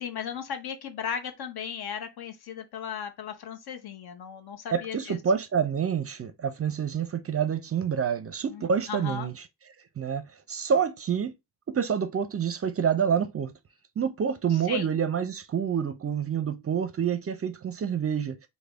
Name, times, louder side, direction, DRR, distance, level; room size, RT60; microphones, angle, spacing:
voice 1, 0.0-5.2 8.5-9.3 14.5-14.9, left 8 dB, 60° left, 0.8 m, -36 dB
voice 2, 4.7-9.4 10.0-11.3 11.7-13.5 14.0-18.5, right 7 dB, 35° right, 0.5 m, -27 dB
3.3 x 2.2 x 3.5 m
supercardioid pair, 65°, 43 cm